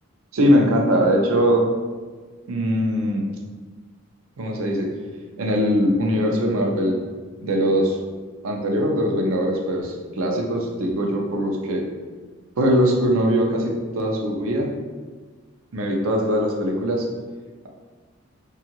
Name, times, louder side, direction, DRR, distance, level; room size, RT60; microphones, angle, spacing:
voice 1, 0.3-1.7 2.5-3.2 4.4-4.9 5.4-7.0 7.4-8.0 8.4-11.8 12.6-14.7 15.7-17.1, equal, 80° right, 1 dB, 0.5 m, -21 dB
2.7 x 2.3 x 2.8 m, 1.4 s
head